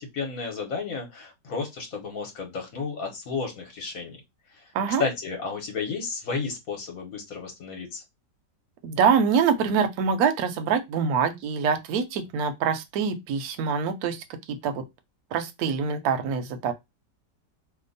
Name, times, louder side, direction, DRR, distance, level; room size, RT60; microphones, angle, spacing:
voice 1, 0.0-4.2 5.0-8.0, left 4 dB, 60° left, 1.2 m, -32 dB
voice 2, 8.8-14.8 15.3-16.7, right 6 dB, 70° right, 1.0 m, -25 dB
2.9 x 2.2 x 3.9 m
omnidirectional pair, 1.9 m